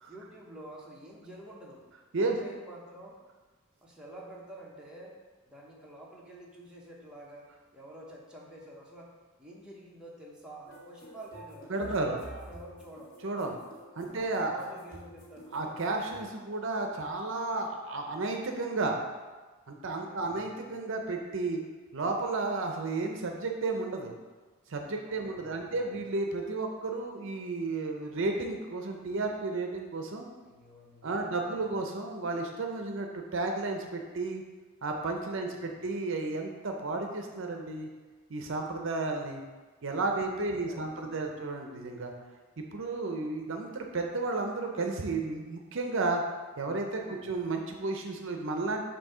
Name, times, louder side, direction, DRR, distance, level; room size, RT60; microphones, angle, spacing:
voice 1, 0.1-1.8 2.2-3.2 3.8-5.1 5.5-9.1 9.4-13.1 14.1-14.2 14.4-15.7 19.8-20.7 25.0-25.8 30.4-31.6 35.5-35.8 40.5-41.4 46.9-47.3, right 1 dB, 5° right, -4 dB, 0.9 m, -49 dB
sound 1, 10.6-16.2, right 1 dB, 40° left, 1.6 m, -49 dB
voice 2, 11.7-12.2 13.2-13.6 14.0-14.6 15.5-19.0 19.7-21.6 21.9-24.1 24.7-30.2 31.0-34.4 34.8-37.9 38.3-39.4 39.8-42.1 42.6-46.2 46.6-48.8, right 3 dB, 60° right, 3 dB, 0.6 m, -32 dB
7.3 x 2.7 x 5.4 m, 1.3 s
head